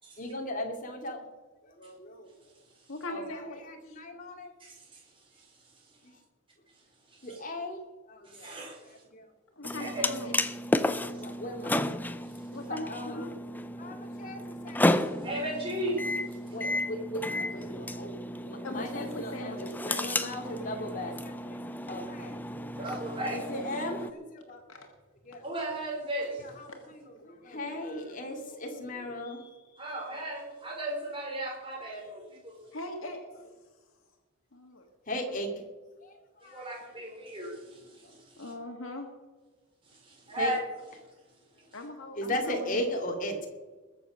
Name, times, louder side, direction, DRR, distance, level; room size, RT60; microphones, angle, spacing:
voice 1, 0.2-1.2 1.6-2.3 3.1-4.5 6.0-6.1 7.2-8.5 8.9-9.2 11.2-11.9 12.7-13.3 13.8-15.4 16.5-22.9 23.1-24.9 25.3-25.4 26.4-29.9 30.2-30.3 35.1-35.6 36.0-36.1 36.4-36.7 40.4-40.5 42.2-43.5, left 1 dB, 40° left, 2 dB, 2.6 m, -38 dB
voice 2, 2.9-4.0 9.6-10.5 12.5-13.3 14.2-14.3 18.6-20.3 24.7-24.8 26.7-26.8 32.7-33.2 34.5-34.8 35.3-35.4 38.4-39.1 41.7-42.8, left 2 dB, 90° left, 3 dB, 1.7 m, -41 dB
voice 3, 4.6-5.0 7.2-7.4 8.2-8.8 9.8-10.4 11.0-11.2 15.0-16.0 22.8-23.4 25.4-26.5 29.8-32.5 36.4-38.4 39.9-40.7, right 1 dB, 25° right, -1 dB, 3.9 m, -36 dB
sound 1, 9.6-24.1, left 1 dB, 10° left, 0.5 m, -33 dB
21.0 x 7.3 x 6.2 m, 1.3 s
head